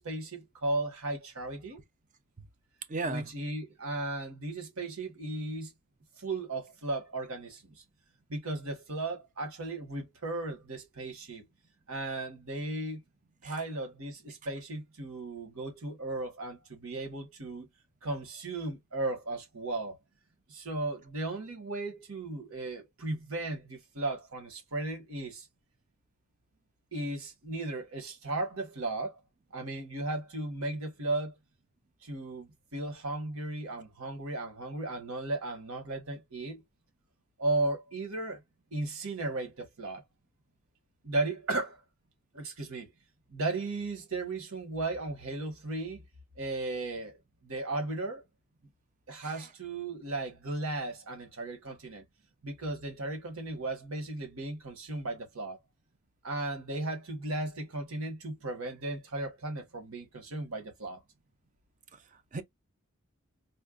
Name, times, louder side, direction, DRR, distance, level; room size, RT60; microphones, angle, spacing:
voice 1, 0.0-1.8 3.0-5.7 6.2-7.7 8.3-11.5 11.9-13.0 13.4-17.7 18.0-20.0 20.5-25.5 26.9-29.2 29.5-31.3 32.0-36.6 37.4-38.4 38.7-40.0 41.0-41.8 42.3-42.9 43.3-46.0 46.4-47.2 47.4-48.2 49.1-52.0 52.4-55.6 56.2-61.0, right 2 dB, 80° right, 1.4 m, -35 dB
voice 2, 2.9-3.3 13.4-13.6 49.2-49.5 61.9-62.4, right 3 dB, 35° right, 0.5 m, -37 dB
4.3 x 2.2 x 2.3 m
head